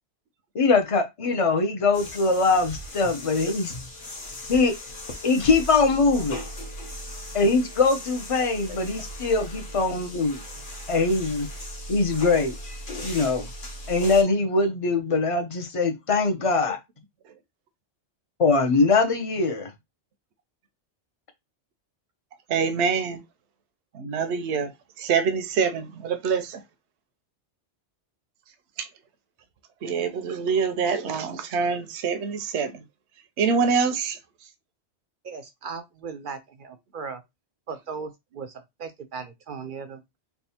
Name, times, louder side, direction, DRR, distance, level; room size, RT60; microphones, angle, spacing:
voice 1, 0.5-3.7 4.5-4.7 5.2-6.4 7.3-10.4 10.9-11.5 11.9-12.5 13.0-13.5 13.9-16.8 18.4-19.7, left 3 dB, 35° left, 0.7 m, -22 dB
sound 1, 1.9-14.2, left 1 dB, 50° left, 1.1 m, -38 dB
voice 2, 22.5-23.2 23.9-24.7 25.0-26.6 28.8-28.9 29.8-32.7 33.4-34.2, right 5 dB, 75° right, 0.9 m, -25 dB
voice 3, 35.2-37.2 37.7-40.0, right 5 dB, 60° right, 0.6 m, -37 dB
3.5 x 2.3 x 4.2 m
omnidirectional pair, 1.2 m